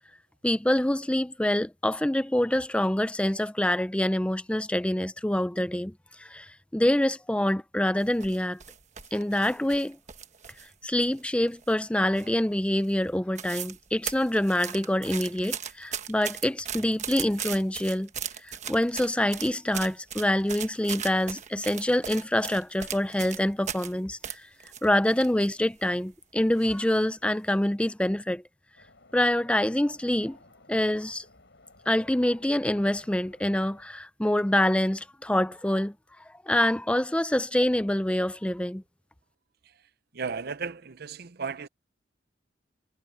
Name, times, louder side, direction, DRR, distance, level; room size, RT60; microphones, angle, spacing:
voice 1, 0.4-5.9 6.2-8.6 9.1-10.0 10.8-18.1 18.4-24.5 24.8-28.4 29.1-30.4 30.7-31.3 31.9-35.9 36.5-38.8, left 1 dB, 5° left, 0.5 m, -26 dB
sound 1, 8.0-10.7 11.0-11.8 12.1-12.5 12.8-12.9 13.1-13.8 14.1-23.9 24.2-25.5 25.8-25.9 26.5-26.9 27.3-27.5, right 8 dB, 40° right, 1.3 m, -37 dB
sound 2, 28.8-33.8, left 2 dB, 70° left, 5.7 m, -57 dB
voice 2, 40.1-41.7, right 5 dB, 60° right, 0.7 m, -34 dB
head